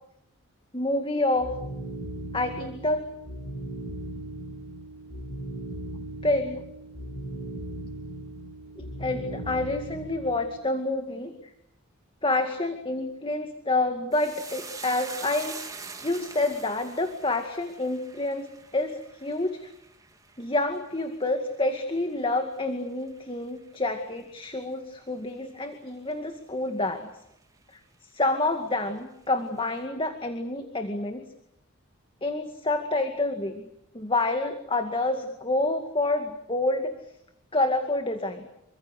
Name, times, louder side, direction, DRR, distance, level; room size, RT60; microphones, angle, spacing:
voice 1, 0.7-1.5 2.3-3.1 6.2-6.6 8.8-11.3 12.2-15.6 16.0-18.5 18.7-19.7 20.4-27.1 28.1-31.2 32.2-33.7 33.9-37.0 37.5-38.4, left 2 dB, 25° left, 6 dB, 2.1 m, -28 dB
sound 1, 1.3-10.6, right 1 dB, 85° left, 6.8 m, -38 dB
sound 2, 14.1-22.7 23.0-23.7 24.0-24.2, right 4 dB, 15° right, 2.8 m, -44 dB
28.0 x 25.0 x 6.6 m, 0.79 s
head